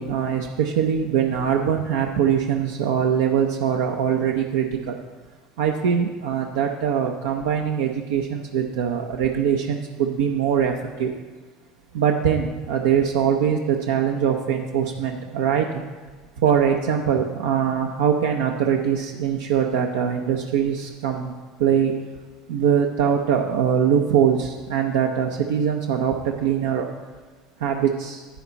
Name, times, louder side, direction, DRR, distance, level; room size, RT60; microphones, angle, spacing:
voice 1, 0.0-4.6 5.6-10.7 11.0-11.1 11.9-15.7 16.4-21.3 21.6-21.9 22.5-26.1 26.4-26.9 27.6-28.2, right 8 dB, 85° right, 2 dB, 0.7 m, -22 dB
10.5 x 8.8 x 4.1 m, 1.4 s
hypercardioid pair, 85°, 0 cm